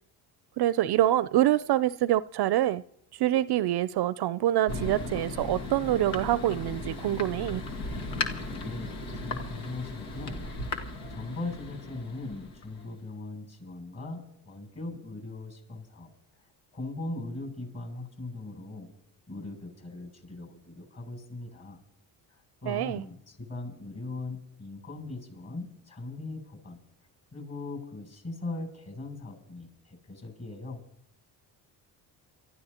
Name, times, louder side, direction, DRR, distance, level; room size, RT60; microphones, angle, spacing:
voice 1, 0.6-2.8 3.1-7.6 22.7-23.0, right 13 dB, 55° right, 0.5 m, -26 dB
Thunder, 4.7-13.0, left 2 dB, 90° left, 2.0 m, -36 dB
voice 2, 8.4-10.5 11.1-16.1 16.7-18.9 19.3-21.8 22.3-26.8 27.3-30.8, left 2 dB, 35° left, 7.9 m, -39 dB
29.5 x 14.0 x 2.9 m
supercardioid pair, 70°, 47 cm